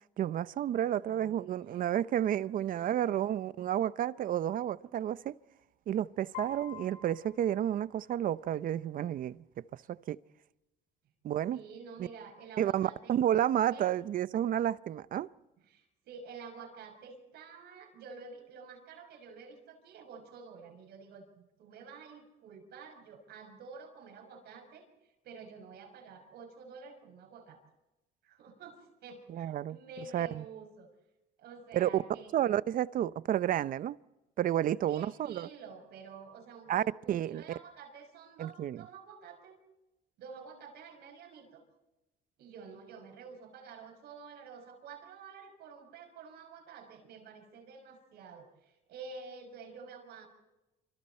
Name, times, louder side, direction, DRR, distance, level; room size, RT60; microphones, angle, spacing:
voice 1, 0.2-5.3 5.9-9.4 10.1-10.2 11.2-11.6 12.6-15.3 29.3-29.8 30.1-30.4 31.7-32.0 32.3-34.0 34.4-35.5 36.7-37.4 38.4-38.8, right 11 dB, 55° right, 0.7 m, -31 dB
voice 2, 0.8-2.0 2.3-3.2 11.5-13.2 13.7-13.9 15.7-27.6 28.2-30.9 31.4-32.4 34.8-39.6 40.2-41.6 42.4-50.3, right 5 dB, 75° right, 5.9 m, -50 dB
Piano, 6.3-8.4, left 7 dB, 90° left, 5.8 m, -47 dB
27.0 x 26.0 x 4.4 m
cardioid pair, 110°, 17 cm